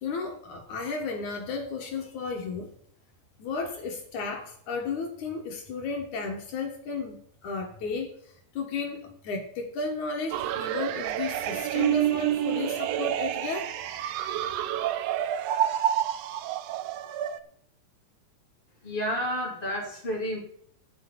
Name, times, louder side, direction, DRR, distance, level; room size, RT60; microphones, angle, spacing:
voice 1, 0.0-2.7 3.4-8.2 8.5-13.7, left 4 dB, 75° left, 2 dB, 3.0 m, -33 dB
sound 1, 10.3-17.4, right 11 dB, 75° right, 1.6 m, -28 dB
voice 2, 18.8-20.4, equal, 15° left, -3 dB, 3.3 m, -30 dB
8.5 x 6.8 x 8.6 m, 0.63 s
omnidirectional pair, 3.5 m